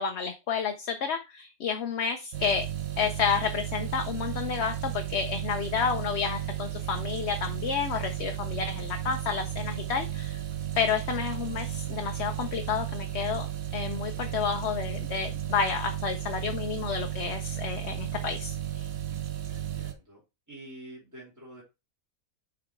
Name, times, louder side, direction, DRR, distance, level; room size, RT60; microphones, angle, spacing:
voice 1, 0.0-2.7 3.0-10.4 10.8-13.5 13.7-18.9, left 6 dB, 55° left, 5 dB, 1.0 m, -30 dB
sound 1, 2.3-19.9, right 11 dB, 85° right, 1.4 m, -34 dB
voice 2, 19.5-20.2 20.5-21.6, right 1 dB, 10° right, -5 dB, 2.8 m, -47 dB
5.6 x 4.9 x 4.5 m, 0.25 s
omnidirectional pair, 1.4 m